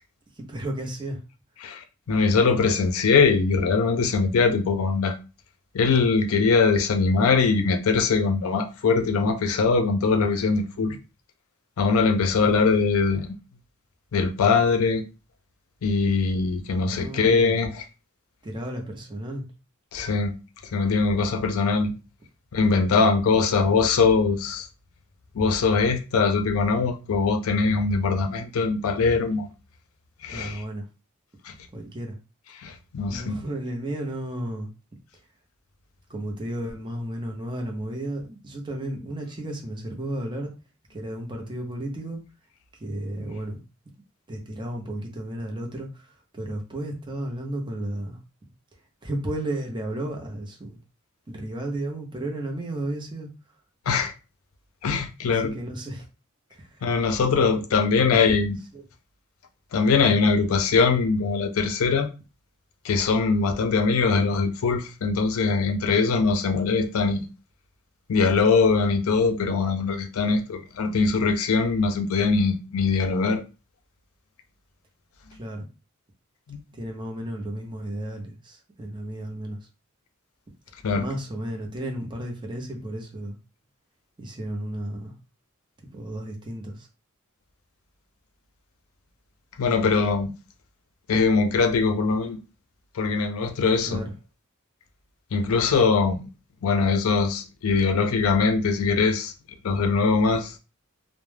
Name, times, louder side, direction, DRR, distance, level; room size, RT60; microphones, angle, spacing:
voice 1, 0.4-1.2 12.4-12.8 16.8-17.6 18.4-19.5 23.6-23.7 30.3-30.9 31.7-32.2 33.1-34.7 36.1-40.5 40.9-42.2 42.7-43.6 44.3-48.2 49.0-50.8 51.3-53.3 55.3-56.1 56.5-56.9 57.7-58.3 58.7-58.8 75.3-75.7 76.7-79.6 80.9-83.4 84.2-85.1 85.8-86.9 93.9-94.1, right 1 dB, 20° right, 0.6 m, -33 dB
voice 2, 1.6-5.2 5.7-11.0 11.8-13.3 14.1-15.0 15.8-17.9 19.9-20.3 20.7-21.9 22.5-24.7 25.3-29.5 30.2-30.6 31.4-31.5 32.6-33.4 53.9-54.1 54.8-55.5 56.8-58.6 59.7-62.1 62.8-67.3 68.1-73.4 76.5-76.6 80.8-81.1 89.6-90.3 91.1-92.4 92.9-94.0 95.3-96.2 96.6-99.3 99.6-100.6, left 4 dB, 70° left, 0.4 m, -22 dB
2.2 x 2.0 x 3.2 m
head